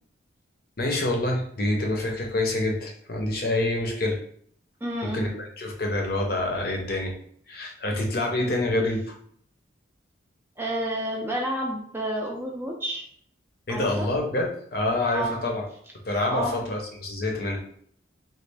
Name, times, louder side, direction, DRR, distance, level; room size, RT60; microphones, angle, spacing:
voice 1, 0.8-4.2 5.0-7.1 7.5-9.2 13.7-15.6 16.1-17.6, left 2 dB, 50° left, 1 dB, 0.6 m, -27 dB
voice 2, 4.8-5.3 8.7-8.8 10.6-13.1 13.7-14.1 15.1-15.4 16.3-16.6, right 1 dB, 10° right, -1 dB, 0.4 m, -30 dB
3.1 x 2.4 x 3.3 m, 0.62 s
head